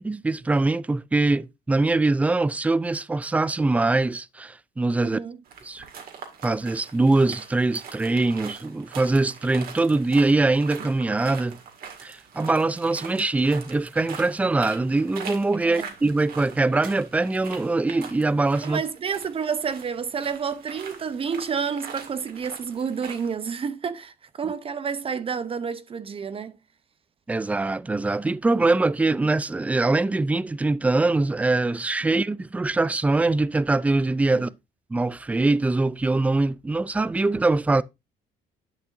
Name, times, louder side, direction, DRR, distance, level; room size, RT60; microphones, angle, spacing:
voice 1, 0.0-5.2 5.6-5.8 6.4-11.6 12.0-18.8 27.3-34.5 34.9-37.8, right 2 dB, 10° right, 0.3 m, -23 dB
voice 2, 5.0-5.4 15.6-15.9 18.6-26.6 32.0-32.1, right 6 dB, 35° right, 0.7 m, -30 dB
sound 1, 5.5-23.3, right 6 dB, 60° right, 2.1 m, -42 dB
10.5 x 6.1 x 2.6 m
cardioid pair, 110°, 17 cm